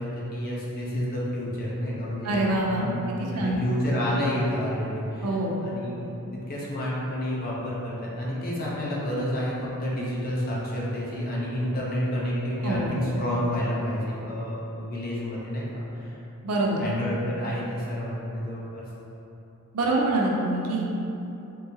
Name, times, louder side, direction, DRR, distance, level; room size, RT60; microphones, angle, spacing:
voice 1, 0.0-3.0 3.3-5.3 5.6-5.9 6.3-16.2 16.8-18.8, equal, 40° left, -6 dB, 0.7 m, -29 dB
voice 2, 2.2-2.9 3.2-3.6 5.2-5.6 12.6-13.1 16.4-16.8 19.7-20.8, right 2 dB, 85° right, -2 dB, 0.5 m, -25 dB
3.7 x 2.7 x 2.7 m, 2.9 s
head